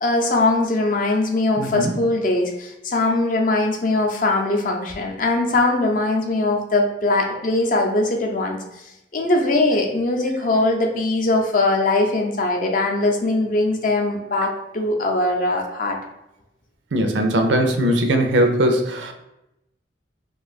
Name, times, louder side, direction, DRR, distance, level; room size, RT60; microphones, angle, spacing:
voice 1, 0.0-8.6 9.1-16.0, left 2 dB, 45° left, 2 dB, 0.5 m, -21 dB
voice 2, 1.6-1.9 16.9-19.1, right 1 dB, 80° right, 4 dB, 0.5 m, -20 dB
2.6 x 2.3 x 4.0 m, 0.89 s
head